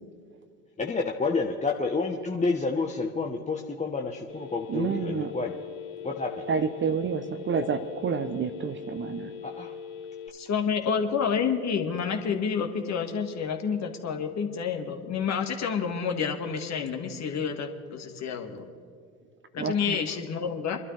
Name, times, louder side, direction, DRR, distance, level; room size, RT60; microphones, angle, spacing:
voice 1, 0.8-5.5 6.0-6.4 9.4-9.7, left 4 dB, 15° left, 1 dB, 1.0 m, -29 dB
Telephone, 4.3-10.3, left 7 dB, 70° left, 2.2 m, -41 dB
voice 2, 4.7-5.3 6.5-9.3 19.6-20.0, right 6 dB, 25° right, 9 dB, 0.7 m, -29 dB
voice 3, 10.3-18.7 19.5-20.8, left 6 dB, 35° left, 4 dB, 1.8 m, -29 dB
25.0 x 12.5 x 3.4 m, 2.2 s
hypercardioid pair, 80°, 47 cm